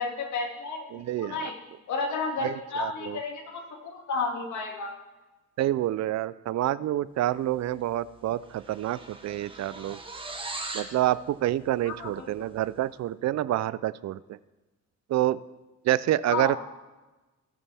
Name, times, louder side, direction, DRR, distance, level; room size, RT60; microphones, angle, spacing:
voice 1, 0.0-0.9 1.2-1.6 1.9-4.9 11.8-12.3 16.3-16.6, left 3 dB, 70° left, 2 dB, 2.3 m, -32 dB
voice 2, 0.9-1.5 2.4-3.2 5.6-10.0 10.7-14.4 15.1-15.4 15.8-16.6, right 13 dB, 60° right, 18 dB, 0.5 m, -28 dB
sound 1, 7.8-8.0 8.3-11.0, right 2 dB, 15° right, 1.5 m, -39 dB
20.0 x 7.2 x 3.5 m, 1.1 s
cardioid pair, 90°, 30 cm